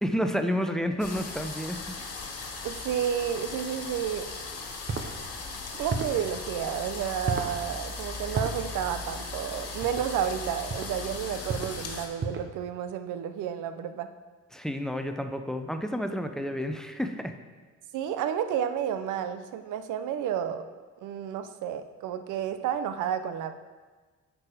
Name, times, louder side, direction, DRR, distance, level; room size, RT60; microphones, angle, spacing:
voice 1, 0.0-2.0 14.5-17.3, equal, ahead, 6 dB, 0.6 m, -30 dB
sound 1, 1.0-12.1, left 3 dB, 55° left, 1.6 m, -38 dB
voice 2, 2.6-4.3 5.7-14.1 17.9-20.7 21.0-23.5, right 9 dB, 85° right, 10 dB, 0.6 m, -31 dB
sound 2, 4.9-5.1 5.9-6.2 7.3-7.6 8.4-8.6 9.8-10.1 10.7-11.0 11.5-11.8 12.2-12.5, right 4 dB, 40° right, 0.9 m, -32 dB
8.5 x 4.9 x 4.9 m, 1.4 s
cardioid pair, 90°, 30 cm